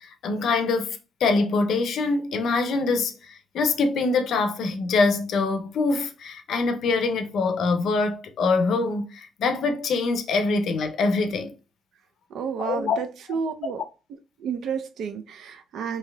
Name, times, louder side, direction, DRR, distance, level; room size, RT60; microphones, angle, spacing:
voice 1, 0.0-11.5 12.6-13.0, left 3 dB, 70° left, 0.5 m, -24 dB
voice 2, 12.3-13.8 14.1-16.0, right 6 dB, 75° right, 0.4 m, -31 dB
3.2 x 2.8 x 2.2 m
cardioid pair, 90°, 0 cm